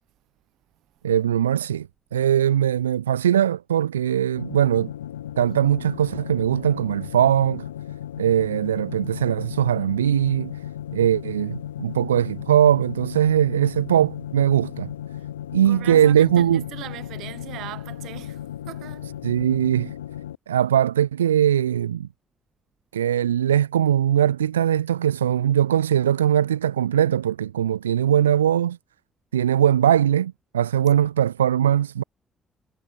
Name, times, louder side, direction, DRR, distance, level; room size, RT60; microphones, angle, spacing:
voice 1, 1.0-4.9 5.4-7.7 8.2-10.5 10.9-14.9 15.5-16.6 19.2-19.9 20.5-22.1 22.9-28.8 29.3-32.0, right 10 dB, 90° right, 1.5 m, -20 dB
sound 1, 4.4-20.4, left 11 dB, 90° left, 3.9 m, -35 dB
voice 2, 15.6-19.1, right 16 dB, 70° right, 6.1 m, -39 dB
hypercardioid pair, 40°, 0 cm